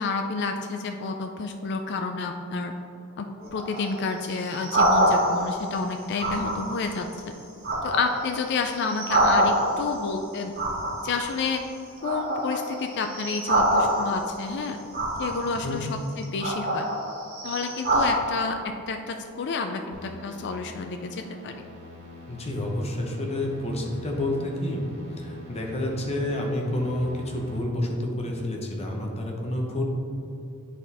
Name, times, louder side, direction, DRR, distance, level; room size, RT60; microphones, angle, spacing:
voice 1, 0.0-2.7 3.2-7.1 7.8-10.5 11.0-11.6 12.0-14.8 15.2-16.9 17.4-18.6 18.9-21.6, left 4 dB, 50° left, 5 dB, 0.4 m, -30 dB
sound 1, 3.4-5.6 6.2-6.9 7.3-10.0 10.5-11.6 12.0-14.4 14.9-15.6 16.2-18.1, right 1 dB, 45° right, 1.4 m, -25 dB
sound 2, 19.9-27.6, left 1 dB, 80° right, 1.3 m, -45 dB
voice 2, 22.3-24.8 25.2-29.8, left 1 dB, 30° left, 0 dB, 0.9 m, -29 dB
9.6 x 4.2 x 3.4 m, 2.8 s
head